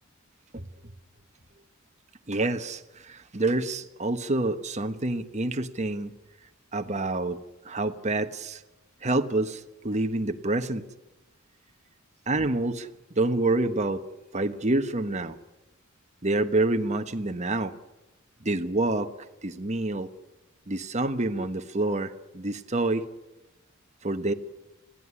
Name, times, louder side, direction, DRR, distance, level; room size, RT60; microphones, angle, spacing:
voice 1, 2.3-6.1 6.7-7.4 7.6-8.6 9.0-10.8 12.3-14.0 14.3-15.4 16.2-17.7 18.4-19.1 19.4-20.1 20.7-23.1 24.0-24.3, right 2 dB, 35° right, 8 dB, 1.2 m, -27 dB
21.0 x 16.0 x 9.9 m, 1.0 s
head